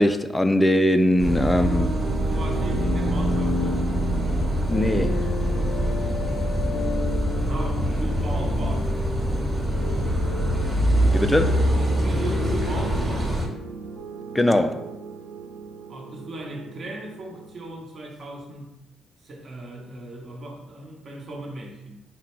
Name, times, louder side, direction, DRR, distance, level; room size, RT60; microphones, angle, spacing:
voice 1, 0.0-1.9 4.7-5.3 11.1-11.6 14.3-14.8, left 1 dB, 10° left, 9 dB, 0.3 m, -21 dB
Car passing by / Idling / Accelerating revving vroom, 1.2-13.4, equal, 20° right, 1.1 m, -24 dB
sound 1, 1.6-9.7 11.1-17.7, right 5 dB, 80° right, 0.4 m, -38 dB
voice 2, 2.2-3.9 7.4-8.9 12.0-13.4 15.9-18.7 19.2-22.0, right 2 dB, 50° right, 0 dB, 0.9 m, -37 dB
sound 2, 2.7-11.7, left 3 dB, 85° left, 0.5 m, -33 dB
3.8 x 2.1 x 4.4 m, 0.91 s
cardioid pair, 90°, 0 cm